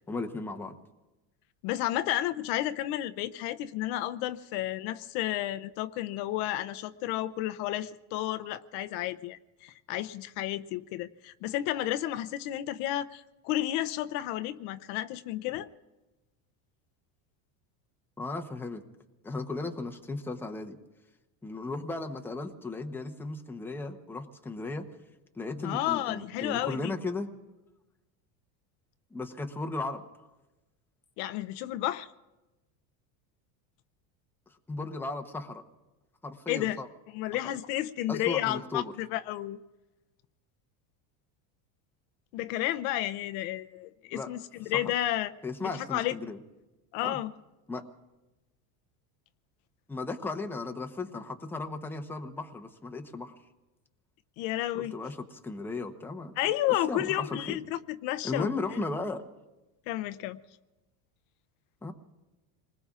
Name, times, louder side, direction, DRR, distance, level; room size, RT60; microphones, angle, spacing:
voice 1, 0.1-0.8 18.2-18.8 19.2-20.8 21.4-24.9 25.3-27.3 29.1-30.0 34.7-35.6 36.2-36.9 38.1-38.9 44.1-44.3 44.6-44.9 45.4-46.4 47.0-47.2 47.7-47.8 49.9-53.3 54.7-56.5 56.9-57.6 58.2-59.2 61.8-61.9, left 3 dB, 5° left, 0.8 m, -36 dB
voice 2, 1.6-15.7 25.6-26.9 31.2-32.1 36.5-36.8 37.1-39.6 42.3-45.3 45.6-46.1 46.9-47.3 54.4-54.9 56.4-58.5 59.9-60.4, left 14 dB, 65° left, 0.7 m, -32 dB
28.0 x 20.5 x 2.4 m
supercardioid pair, 135°, 44 cm